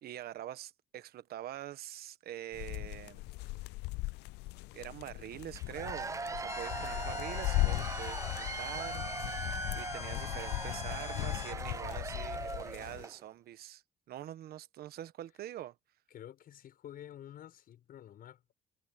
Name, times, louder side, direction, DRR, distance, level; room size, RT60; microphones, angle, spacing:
voice 1, 0.0-3.2 4.7-9.0 9.7-15.7, right 12 dB, 65° right, 1.3 m, -45 dB
sound 1, 2.5-13.0, left 22 dB, 85° left, 0.4 m, -38 dB
Cheering / Applause / Crowd, 5.6-13.2, right 4 dB, 20° right, 0.8 m, -40 dB
sound 2, 6.5-11.5, left 9 dB, 40° left, 0.6 m, -45 dB
voice 2, 16.1-18.5, left 11 dB, 60° left, 6.9 m, -50 dB
cardioid pair, 110°, 17 cm